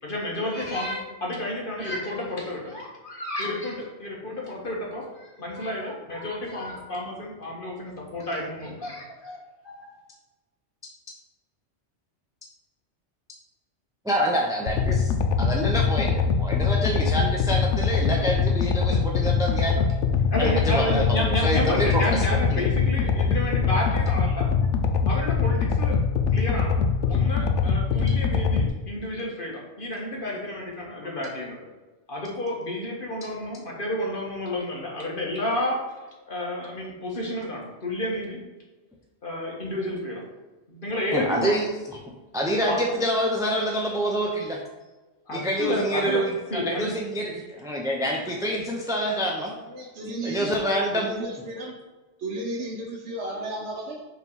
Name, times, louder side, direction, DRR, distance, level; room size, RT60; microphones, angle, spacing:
voice 1, 0.0-9.4 9.6-9.9 19.8-19.9 20.3-24.7 25.1-31.6 32.1-35.8 36.3-38.4 39.2-40.2 40.7-41.5 42.7-42.8 45.3-46.2 46.5-46.9, left 1 dB, 50° left, -2 dB, 1.7 m, -31 dB
voice 2, 14.0-15.1 15.4-19.8 20.4-22.0 22.5-22.6 41.1-41.7 42.3-44.6 45.3-49.5 50.2-51.1, equal, 5° right, -1 dB, 0.6 m, -26 dB
sound 1, 14.7-28.7, left 5 dB, 80° left, 0.9 m, -23 dB
voice 3, 49.7-50.6 50.9-51.8 52.2-54.0, right 2 dB, 70° right, -4 dB, 1.2 m, -33 dB
5.6 x 3.9 x 5.4 m, 1.2 s
omnidirectional pair, 1.2 m